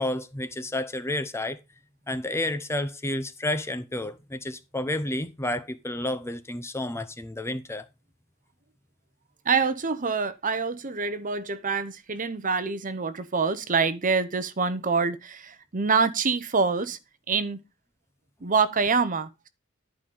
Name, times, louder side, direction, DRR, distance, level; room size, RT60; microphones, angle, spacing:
voice 1, 0.0-1.6 2.1-7.9, left 1 dB, 15° left, 0.7 m, -30 dB
voice 2, 9.4-17.0 17.3-17.6 18.4-19.5, right 5 dB, 40° right, 0.9 m, -26 dB
11.5 x 5.0 x 5.4 m
head